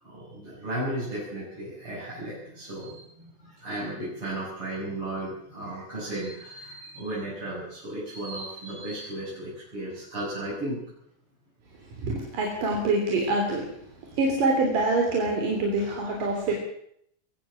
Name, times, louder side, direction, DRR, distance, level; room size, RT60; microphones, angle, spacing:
voice 1, 0.1-10.8, right 1 dB, 40° right, -8 dB, 8.2 m, -35 dB
voice 2, 12.0-13.7 14.2-16.5, right 2 dB, 85° right, 0 dB, 5.1 m, -25 dB
22.0 x 16.0 x 7.3 m, 0.70 s
omnidirectional pair, 3.7 m